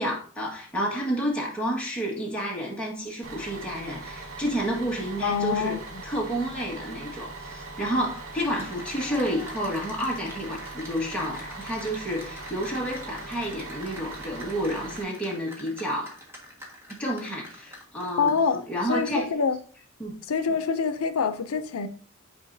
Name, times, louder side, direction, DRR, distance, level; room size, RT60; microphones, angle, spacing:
voice 1, 0.0-16.2 16.9-18.4 18.7-19.3 20.0-20.2, equal, 5° left, 1.6 m, -30 dB
Bus, 3.2-15.0, right 3 dB, 75° right, 1.0 m, -41 dB
voice 2, 5.2-6.0 18.2-19.6 20.3-21.9, left 5 dB, 85° left, 0.5 m, -26 dB
Cheering / Applause, 8.3-18.5, left 1 dB, 10° right, 1.6 m, -45 dB
9.4 x 4.4 x 2.6 m
head